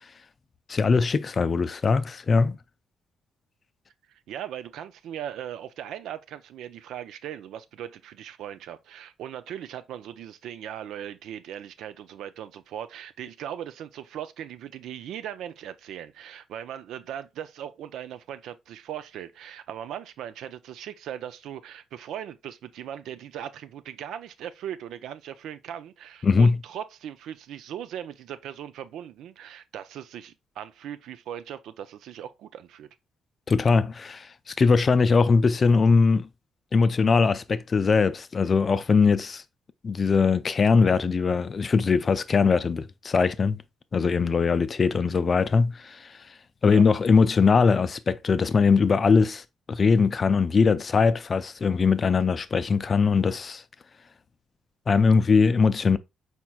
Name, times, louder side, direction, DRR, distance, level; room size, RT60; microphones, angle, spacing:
voice 1, 0.7-2.6 26.2-26.6 33.5-36.3 36.7-39.4 39.8-43.6 43.9-46.2 46.6-53.6 54.9-56.0, left 5 dB, 40° left, 0.4 m, -21 dB
voice 2, 4.1-32.9 46.7-46.8, right 10 dB, 80° right, 0.4 m, -39 dB
4.5 x 4.3 x 2.3 m
cardioid pair, 90°, 0 cm